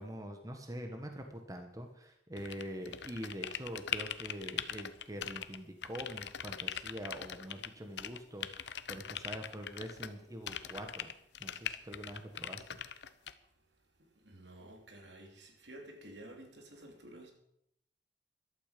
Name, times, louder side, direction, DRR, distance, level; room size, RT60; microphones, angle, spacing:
voice 1, 0.0-11.1 11.4-12.8, equal, 20° right, 1.3 m, -44 dB
sound 1, 2.4-5.6 5.8-7.7 8.0-10.2 10.5-13.3, left 9 dB, 75° left, 0.8 m, -41 dB
voice 2, 14.2-17.3, right 1 dB, 75° right, 3.3 m, -52 dB
14.0 x 12.5 x 5.2 m
head